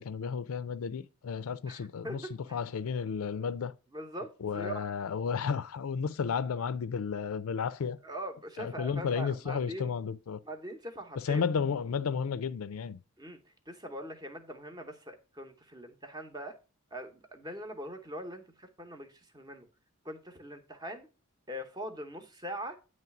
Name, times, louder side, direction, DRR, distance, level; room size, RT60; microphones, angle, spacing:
voice 1, 0.0-3.7 4.4-8.0 8.6-10.4 11.2-13.0, left 6 dB, 80° left, 0.4 m, -33 dB
voice 2, 1.7-2.6 3.9-4.8 8.0-9.9 10.4-11.4 13.2-13.4 13.7-16.6 16.9-19.7 20.0-21.1 21.5-22.8, equal, 20° right, 0.9 m, -42 dB
9.1 x 3.2 x 5.8 m
head